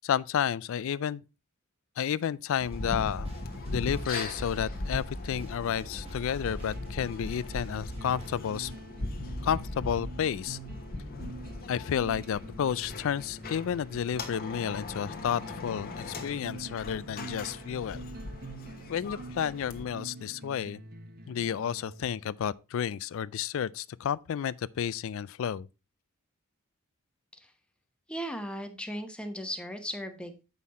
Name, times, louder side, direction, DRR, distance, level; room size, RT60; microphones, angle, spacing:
voice 1, 0.0-1.2 2.0-3.3 3.7-8.7 9.4-10.6 11.7-18.0 18.9-20.8 21.3-25.7, left 8 dB, 65° left, 0.3 m, -31 dB
sound 1, 2.6-19.9, left 2 dB, 45° left, 1.1 m, -39 dB
sound 2, 2.6-8.4, right 2 dB, 30° right, 1.6 m, -49 dB
sound 3, 6.6-22.5, right 1 dB, 45° right, 1.1 m, -46 dB
voice 2, 28.1-30.4, equal, 5° left, 1.0 m, -37 dB
8.3 x 5.5 x 4.2 m
head